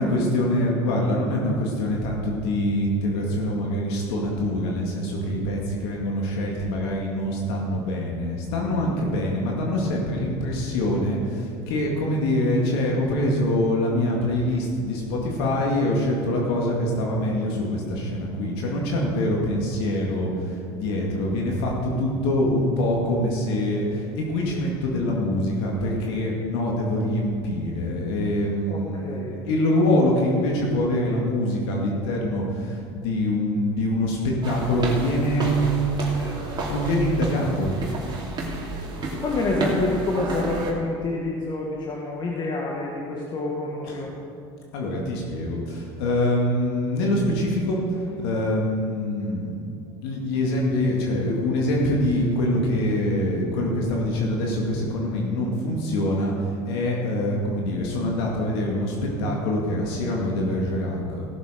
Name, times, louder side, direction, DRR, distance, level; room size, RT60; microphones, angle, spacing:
voice 1, 0.0-21.7 22.0-37.9 43.8-44.1 44.7-49.5 50.0-61.3, left 1 dB, 75° left, -2 dB, 2.2 m, -24 dB
voice 2, 28.7-29.4 39.2-44.1, left 2 dB, 35° left, -2 dB, 1.7 m, -27 dB
sound 1, 34.4-40.7, right 2 dB, 35° right, 2.8 m, -31 dB
16.5 x 7.1 x 5.1 m, 2.5 s
supercardioid pair, 95°, 13 cm